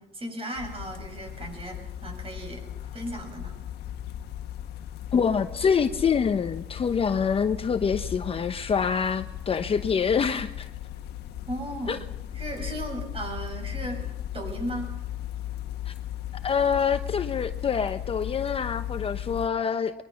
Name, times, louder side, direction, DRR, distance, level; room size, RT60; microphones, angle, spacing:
voice 1, 0.0-2.6 2.9-3.6 11.5-12.0 12.3-15.0, right 1 dB, 35° right, 7.8 m, -36 dB
sound 1, 0.6-19.5, left 11 dB, 75° left, 1.4 m, -37 dB
voice 2, 5.1-10.7 11.9-12.0 15.9-16.0 16.4-19.9, left 6 dB, 35° left, 0.9 m, -26 dB
22.5 x 22.0 x 5.9 m
cardioid pair, 110°, 17 cm